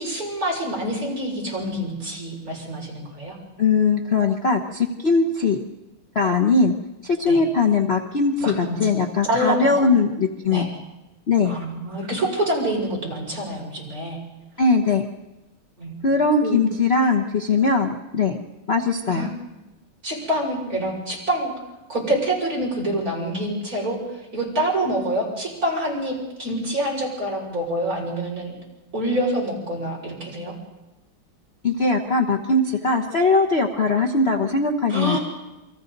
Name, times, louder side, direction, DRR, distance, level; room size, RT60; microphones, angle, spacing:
voice 1, 0.0-3.4 7.3-7.4 8.4-8.8 9.3-9.9 10.4-10.7 11.5-14.2 15.8-15.9 16.4-16.6 19.1-19.3 20.0-21.5 21.9-24.0 24.3-28.6 28.9-30.5 34.9-35.2, right 1 dB, 40° right, -3 dB, 6.7 m, -26 dB
voice 2, 3.6-5.6 6.1-6.7 7.0-10.7 11.3-11.5 14.6-15.0 16.0-18.4 18.7-19.3 31.6-35.2, left 4 dB, 35° left, 2 dB, 1.2 m, -20 dB
29.0 x 23.5 x 4.1 m, 1.0 s
omnidirectional pair, 2.2 m